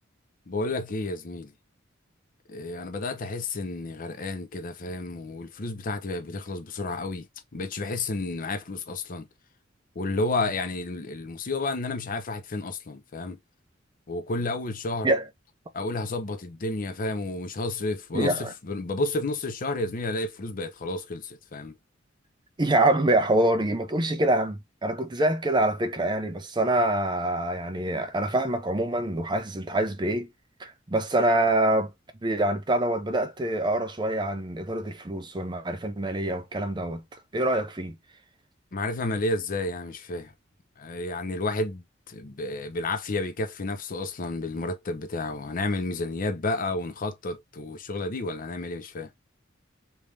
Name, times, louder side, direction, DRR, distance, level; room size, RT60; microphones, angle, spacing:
voice 1, 0.5-1.5 2.5-7.3 7.5-9.3 10.0-13.4 14.1-15.1 15.7-21.7 38.7-40.3 40.8-49.1, left 2 dB, 45° left, 0.6 m, -31 dB
voice 2, 18.1-18.5 22.6-30.3 30.6-31.9 32.2-37.0 37.3-38.0, right 1 dB, 25° right, 0.5 m, -25 dB
3.5 x 2.6 x 3.2 m
head